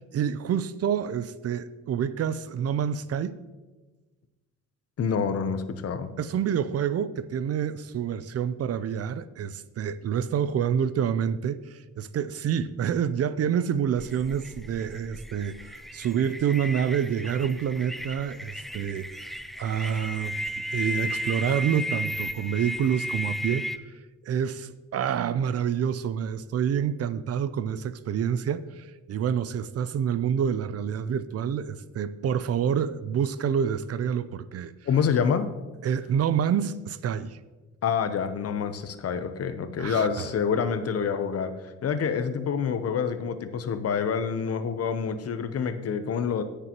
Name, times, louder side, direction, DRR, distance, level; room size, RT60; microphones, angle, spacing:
voice 1, 0.0-3.4 6.2-23.9 24.2-34.7 35.8-37.4 39.8-40.3, right 8 dB, 55° right, 0.5 m, -28 dB
voice 2, 5.0-6.1 34.9-35.5 37.8-46.4, left 6 dB, 50° left, 0.8 m, -27 dB
sound 1, 14.0-23.8, equal, ahead, 0.4 m, -35 dB
16.5 x 6.7 x 3.0 m
cardioid pair, 90°, 30 cm